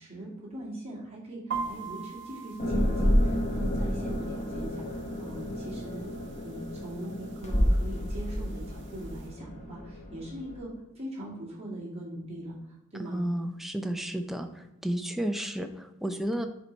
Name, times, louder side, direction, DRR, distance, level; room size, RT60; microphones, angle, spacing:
voice 1, 0.0-6.1 6.4-10.7 10.9-12.6 12.9-13.2, right 1 dB, 30° right, -5 dB, 2.2 m, -41 dB
sound 1, 1.5-9.3, right 5 dB, 55° right, 0.8 m, -43 dB
sound 2, 2.6-10.6, equal, 30° left, 0.9 m, -30 dB
voice 2, 13.0-16.5, right 1 dB, ahead, 6 dB, 0.4 m, -32 dB
7.3 x 4.0 x 4.5 m, 0.96 s
head